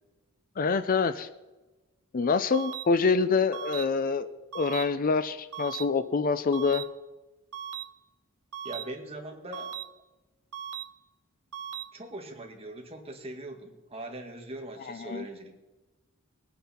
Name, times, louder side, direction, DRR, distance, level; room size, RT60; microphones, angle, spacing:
voice 1, 0.6-1.3 2.1-4.3 4.5-6.8 14.9-15.3, left 4 dB, 40° left, 12 dB, 0.4 m, -26 dB
sound 1, 2.5-2.8 3.5-3.8 4.5-4.8 5.5-5.8 6.5-6.8 7.5-7.8 8.5-8.8 9.5-9.8 10.5-10.8 11.5-11.8, right 9 dB, 80° right, 0.9 m, -37 dB
voice 2, 8.6-9.8 11.9-15.5, right 1 dB, 25° right, 2 dB, 1.8 m, -41 dB
20.5 x 9.2 x 4.4 m, 1.1 s
head